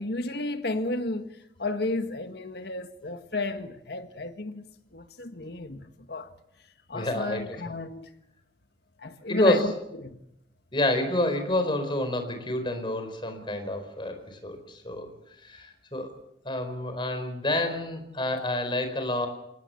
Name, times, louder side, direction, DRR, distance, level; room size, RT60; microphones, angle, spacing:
voice 1, 0.0-4.6 4.9-6.3 6.9-8.1 9.0-9.7 10.0-10.2, left 2 dB, 60° left, 1.7 m, -33 dB
voice 2, 6.9-7.4 9.3-9.7 10.7-15.1 15.4-16.1 16.4-19.3, left 1 dB, 25° left, 4.6 m, -28 dB
27.5 x 18.5 x 7.1 m
head